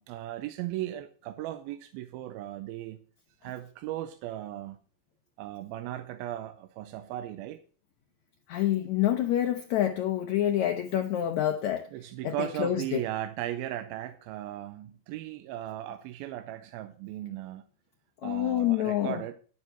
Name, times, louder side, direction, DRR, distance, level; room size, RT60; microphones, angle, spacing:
voice 1, 0.0-3.0 3.4-4.8 5.4-7.6 11.9-17.6 18.2-19.3, right 13 dB, 85° right, 9 dB, 2.6 m, -37 dB
voice 2, 8.5-11.9 12.2-13.0 18.2-19.2, left 12 dB, 90° left, 6 dB, 1.6 m, -27 dB
10.0 x 9.6 x 4.5 m, 0.40 s
omnidirectional pair, 4.3 m